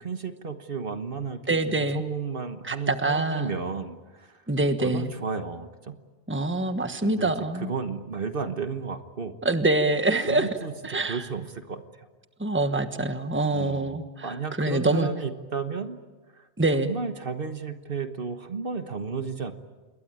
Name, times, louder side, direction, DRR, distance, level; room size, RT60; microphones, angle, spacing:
voice 1, 0.0-4.4 4.8-6.0 7.0-9.4 10.2-10.7 11.0-12.1 13.5-16.0 16.3-19.5, right 5 dB, 60° right, 8 dB, 1.5 m, -33 dB
voice 2, 1.5-2.0 2.6-3.5 4.5-5.1 6.3-7.7 9.4-10.5 10.8-11.2 12.4-15.1 16.6-16.9, right 2 dB, 10° right, 8 dB, 1.3 m, -25 dB
27.5 x 22.0 x 8.8 m, 1.3 s
omnidirectional pair, 1.1 m